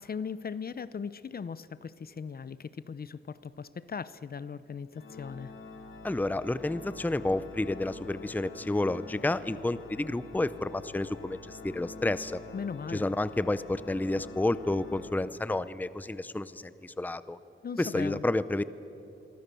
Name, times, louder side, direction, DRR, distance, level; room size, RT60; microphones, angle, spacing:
voice 1, 0.0-5.5 12.5-13.0 17.6-18.2, left 6 dB, 50° left, 16 dB, 0.7 m, -38 dB
Organ, 4.9-15.8, left 4 dB, 75° left, 2.8 m, -47 dB
voice 2, 6.0-12.4 12.9-17.4 17.8-18.6, left 2 dB, 10° left, 15 dB, 0.6 m, -30 dB
26.0 x 23.5 x 6.9 m, 2.9 s
wide cardioid pair, 95°, 20 cm